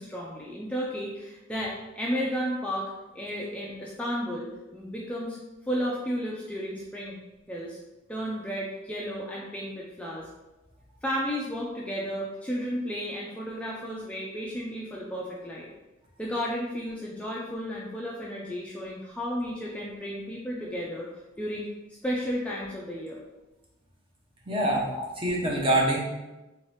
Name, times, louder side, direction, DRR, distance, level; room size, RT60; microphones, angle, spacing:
voice 1, 0.0-4.5 4.7-5.4 5.7-7.2 7.5-7.8 8.1-10.3 11.0-15.7 16.2-21.1 21.4-21.7 22.0-23.2 24.9-25.1, equal, 5° left, -5 dB, 0.4 m, -33 dB
voice 2, 24.5-24.9 25.2-26.0, right 1 dB, 30° right, -3 dB, 0.8 m, -24 dB
3.5 x 2.8 x 3.2 m, 1.0 s
head